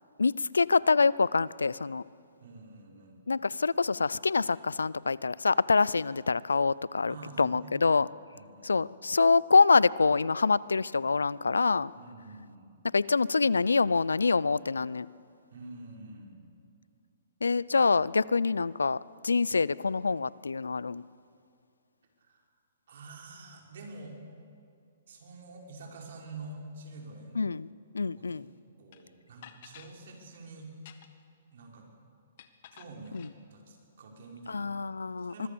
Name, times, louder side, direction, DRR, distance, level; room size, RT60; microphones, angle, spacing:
voice 1, 0.2-2.0 3.3-8.1 8.6-11.9 12.9-15.1 17.4-19.0 19.2-21.0 27.4-27.7 27.9-28.5 33.1-33.3 34.5-35.5, left 4 dB, 85° left, 0.5 m, -25 dB
voice 2, 2.4-3.2 7.1-7.8 8.3-8.7 11.9-12.7 15.5-16.4 22.2-22.4 22.9-24.2 25.1-27.4 28.1-28.4 28.8-30.7 31.5-31.9 32.7-35.5, right 3 dB, 60° right, 5.2 m, -47 dB
sound 1, 28.9-29.0 29.4-29.9 30.7-31.3 32.4-33.3, left 10 dB, 55° left, 1.7 m, -52 dB
24.5 x 22.0 x 7.0 m
hypercardioid pair, 125°, 0 cm